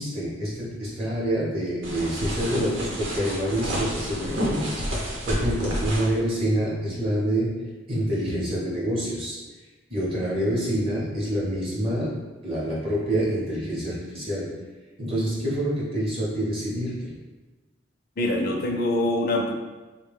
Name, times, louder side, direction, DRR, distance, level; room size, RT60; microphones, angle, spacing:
voice 1, 0.0-9.4 9.9-14.5 15.0-17.1, equal, 30° right, -7 dB, 0.8 m, -27 dB
sound 1, 1.8-6.2, equal, 90° right, 0.9 m, -30 dB
voice 2, 18.2-19.5, left 1 dB, 50° left, 2 dB, 0.5 m, -24 dB
3.7 x 2.2 x 3.4 m, 1.2 s
head